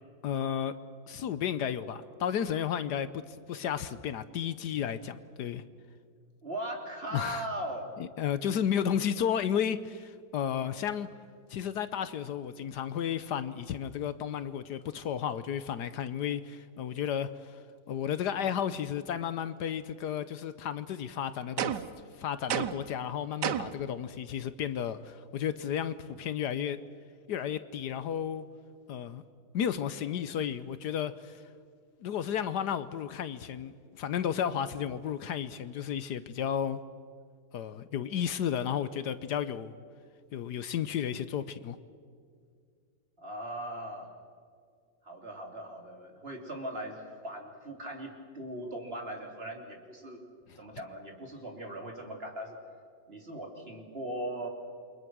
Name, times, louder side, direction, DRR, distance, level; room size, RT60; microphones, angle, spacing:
voice 1, 0.2-0.7 1.1-3.2 3.5-5.6 7.1-7.5 8.2-11.1 11.5-17.6 17.9-21.8 22.1-26.8 27.3-28.4 28.9-29.2 29.5-31.4 32.0-36.8 37.5-39.7 40.3-41.8, left 9 dB, 70° left, 1.3 m, -33 dB
voice 2, 6.4-7.9 43.2-44.1 45.0-50.2 50.6-52.6 53.1-54.5, right 1 dB, 35° right, 3.3 m, -39 dB
sound 1, 21.6-22.0 22.5-22.9 23.4-23.9, right 10 dB, 75° right, 1.5 m, -31 dB
28.5 x 24.0 x 6.2 m
omnidirectional pair, 1.9 m